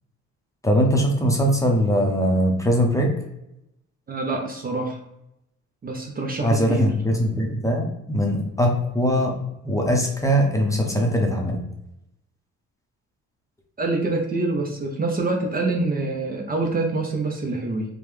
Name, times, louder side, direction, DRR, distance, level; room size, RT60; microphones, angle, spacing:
voice 1, 0.6-3.1 6.4-9.4 9.6-11.6, equal, 10° left, 1 dB, 0.7 m, -21 dB
voice 2, 4.1-5.0 5.8-6.9 13.8-17.9, right 3 dB, 30° right, 1 dB, 0.6 m, -25 dB
3.5 x 2.2 x 3.1 m, 0.85 s
cardioid pair, 90°, 30 cm